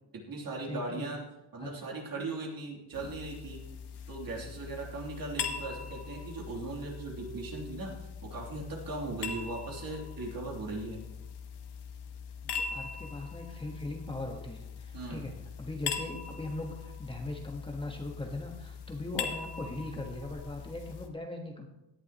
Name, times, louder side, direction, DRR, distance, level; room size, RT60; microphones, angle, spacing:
voice 1, 0.1-1.2 1.5-3.7 4.1-11.1 14.9-15.3 16.1-16.2, right 3 dB, 50° right, -1 dB, 3.2 m, -39 dB
voice 2, 0.6-1.0 1.6-1.7 2.0-2.3 12.4-21.7, left 2 dB, 10° left, 1 dB, 1.3 m, -40 dB
sound 1, 2.7-7.6, right 7 dB, 75° right, 3.5 m, -54 dB
sound 2, 2.9-21.1, left 6 dB, 65° left, 1.3 m, -41 dB
17.5 x 10.5 x 3.0 m, 0.96 s
cardioid pair, 135°, 43 cm